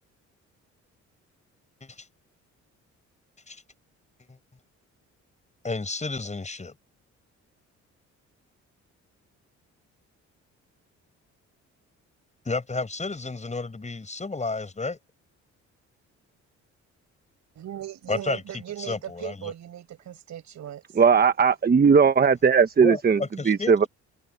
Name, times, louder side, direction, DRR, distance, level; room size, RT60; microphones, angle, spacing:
voice 1, 5.6-6.7 12.5-15.0 18.1-18.4 18.8-19.5 22.8-23.9, left 3 dB, 25° left, 7.0 m, -31 dB
voice 2, 17.6-20.8, right 11 dB, 65° right, 5.2 m, -38 dB
voice 3, 21.0-23.2 23.5-23.8, right 6 dB, 30° right, 1.1 m, -18 dB
open air
cardioid pair, 90°, 30 cm